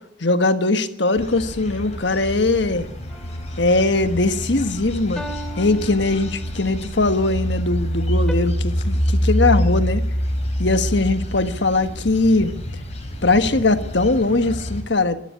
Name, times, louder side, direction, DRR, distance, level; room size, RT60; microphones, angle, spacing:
voice 1, 0.2-2.9 3.6-5.2 5.6-10.0 10.6-12.5 13.2-15.2, left 2 dB, 65° left, 1.5 m, -20 dB
sound 1, 1.1-14.8, equal, 35° left, 4.6 m, -26 dB
sound 2, 3.1-3.8 5.2-6.8 8.3-8.4, right 1 dB, 5° left, 2.3 m, -37 dB
26.0 x 13.0 x 8.6 m
head